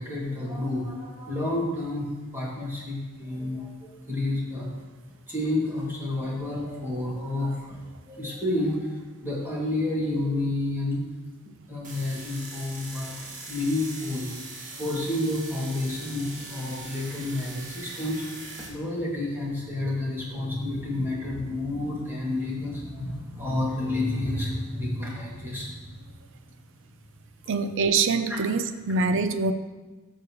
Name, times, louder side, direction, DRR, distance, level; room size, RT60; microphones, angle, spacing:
voice 1, 0.0-4.7 5.3-11.1 11.7-14.3 14.7-18.2 18.7-26.2 26.6-26.7 28.3-28.4, left 2 dB, 10° right, -5 dB, 2.3 m, -30 dB
sound 1, 11.8-18.7, right 2 dB, 35° right, 1.9 m, -41 dB
voice 2, 27.5-29.5, right 4 dB, 60° right, 10 dB, 0.6 m, -24 dB
14.5 x 6.6 x 3.1 m, 1.2 s
head